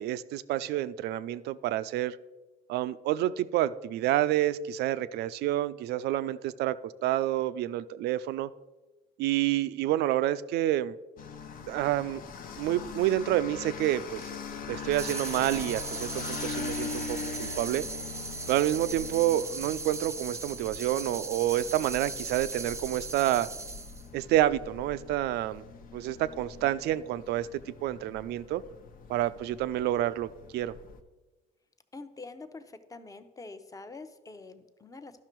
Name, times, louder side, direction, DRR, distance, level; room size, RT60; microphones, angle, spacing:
voice 1, 0.0-2.2 2.7-8.5 9.2-11.0 11.7-12.2 12.6-14.2 14.7-17.9 18.5-23.5 24.1-25.6 25.9-28.6 29.1-30.7, right 13 dB, 75° right, 16 dB, 0.4 m, -28 dB
sound 1, 11.2-31.0, left 5 dB, 55° left, 0.9 m, -42 dB
sound 2, 14.9-24.1, right 3 dB, 15° right, 0.5 m, -38 dB
voice 2, 31.9-32.6 32.9-35.1, left 3 dB, 20° left, 10 dB, 0.7 m, -45 dB
11.5 x 5.9 x 4.5 m, 1.2 s
cardioid pair, 110°, 17 cm